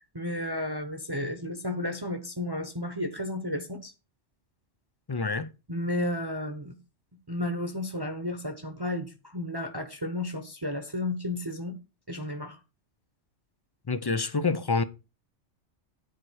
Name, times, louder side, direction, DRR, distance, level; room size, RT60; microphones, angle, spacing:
voice 1, 0.1-3.9 5.7-6.7 7.3-11.8 12.1-12.6, left 1 dB, 20° right, 0.9 m, -32 dB
voice 2, 5.1-5.5 13.9-14.8, left 4 dB, 35° left, 0.4 m, -27 dB
9.6 x 4.5 x 6.3 m
omnidirectional pair, 1.2 m